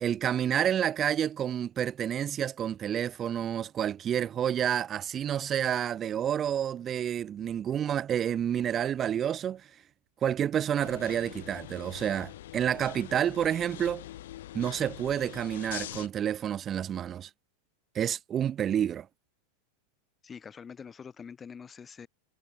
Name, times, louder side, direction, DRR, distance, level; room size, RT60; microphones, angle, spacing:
voice 1, 0.0-9.7 10.2-14.1 14.5-17.3 17.9-19.1, right 9 dB, 30° right, 0.4 m, -29 dB
sound 1, 10.8-16.1, left 14 dB, 65° left, 0.9 m, -43 dB
voice 2, 20.2-22.1, left 6 dB, 20° left, 6.3 m, -45 dB
figure-of-eight pair, 95°, 0 cm